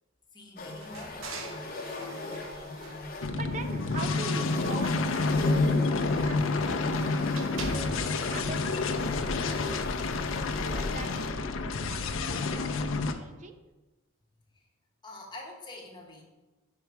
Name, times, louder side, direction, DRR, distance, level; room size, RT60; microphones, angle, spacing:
voice 1, 0.3-1.3 14.5-14.6 15.0-16.2, left 2 dB, 20° left, -1 dB, 1.2 m, -45 dB
sound 1, 0.6-11.3, left 2 dB, 45° left, 0.8 m, -39 dB
sound 2, 0.8-4.0 4.3-8.3, right 2 dB, 75° right, 0.8 m, -44 dB
sound 3, 3.2-13.1, left 3 dB, 75° left, 0.5 m, -29 dB
voice 2, 3.3-7.3 8.0-9.9 10.7-13.6, right 4 dB, 40° right, 7 dB, 0.6 m, -43 dB
5.7 x 5.4 x 4.6 m, 1.1 s
head